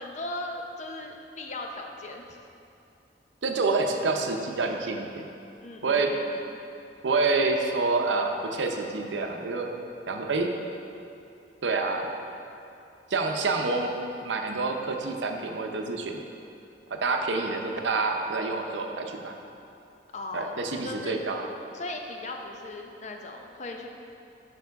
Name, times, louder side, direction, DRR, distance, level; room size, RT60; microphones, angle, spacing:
voice 1, 0.0-2.2 5.6-6.6 20.1-21.2 21.7-23.9, left 2 dB, 40° left, 2 dB, 0.6 m, -38 dB
voice 2, 3.4-5.3 5.8-6.1 7.0-9.7 10.1-10.5 11.6-12.1 13.1-13.9 14.2-16.2 16.9-19.3 20.3-21.5, right 3 dB, 90° right, 4 dB, 0.6 m, -27 dB
6.9 x 5.4 x 4.6 m, 2.7 s
head